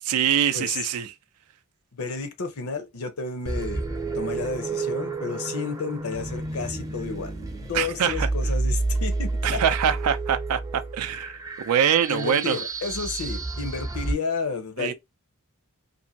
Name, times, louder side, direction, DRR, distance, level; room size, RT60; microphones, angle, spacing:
voice 1, 0.1-1.1 7.7-8.3 9.4-11.4 11.6-12.6 14.8-14.9, right 9 dB, 90° right, 0.4 m, -24 dB
voice 2, 1.9-7.3 7.6-9.6 12.1-14.9, left 4 dB, 70° left, 0.7 m, -31 dB
sound 1, 3.5-14.1, right 3 dB, 15° right, 0.5 m, -30 dB
2.7 x 2.5 x 2.7 m
head